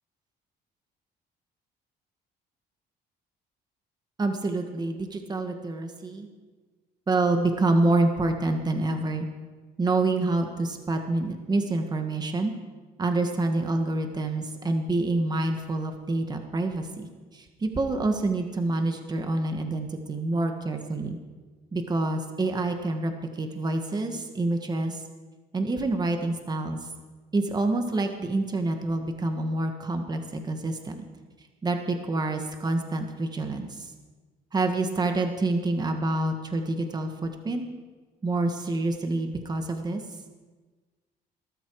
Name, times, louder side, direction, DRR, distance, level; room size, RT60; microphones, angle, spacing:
voice 1, 4.2-6.3 7.1-9.3 9.8-12.5 13.0-17.1 17.3-21.2 21.7-25.0 25.5-26.8 27.3-31.1 31.6-33.9 34.5-37.6 38.2-40.0, right 2 dB, 25° right, 5 dB, 1.7 m, -27 dB
19.5 x 13.5 x 4.9 m, 1.3 s
cardioid pair, 110°, 17 cm